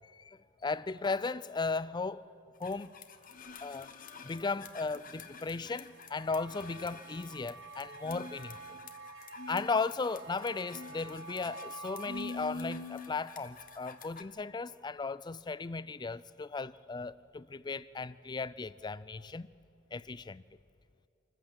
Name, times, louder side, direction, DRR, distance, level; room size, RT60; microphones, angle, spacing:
voice 1, 0.2-2.2 2.6-2.9 3.6-8.6 9.5-19.5 19.9-20.4, left 4 dB, 20° left, 0.4 m, -36 dB
sound 1, 2.6-14.2, left 3 dB, 40° left, 1.2 m, -47 dB
sound 2, 5.9-14.5, right 2 dB, 65° right, 1.5 m, -49 dB
27.0 x 15.0 x 7.5 m
head